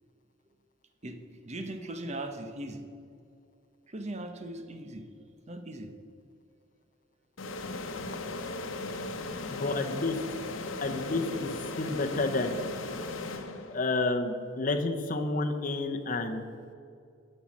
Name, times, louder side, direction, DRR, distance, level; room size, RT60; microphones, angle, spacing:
voice 1, 1.4-2.9 3.9-5.0 5.5-5.9, right 1 dB, 35° right, 7 dB, 0.8 m, -39 dB
sound 1, 7.4-14.0, left 3 dB, 85° left, 0.9 m, -37 dB
voice 2, 9.5-10.1 10.8-11.5 11.8-12.6 13.7-16.4, left 3 dB, 45° left, 6 dB, 0.8 m, -30 dB
11.5 x 5.5 x 6.2 m, 2.4 s
head